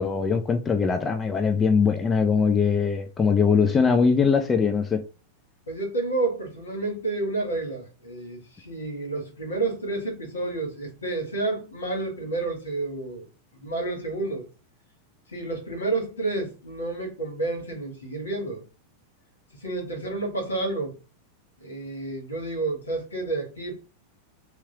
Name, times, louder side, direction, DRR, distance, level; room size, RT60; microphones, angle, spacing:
voice 1, 0.0-5.0, left 5 dB, 20° left, 0.4 m, -21 dB
voice 2, 5.7-13.3 13.5-14.4 15.3-18.6 19.6-20.9 21.6-23.8, right 3 dB, 75° left, 1.6 m, -30 dB
3.6 x 2.9 x 2.9 m
figure-of-eight pair, 90°, 0 cm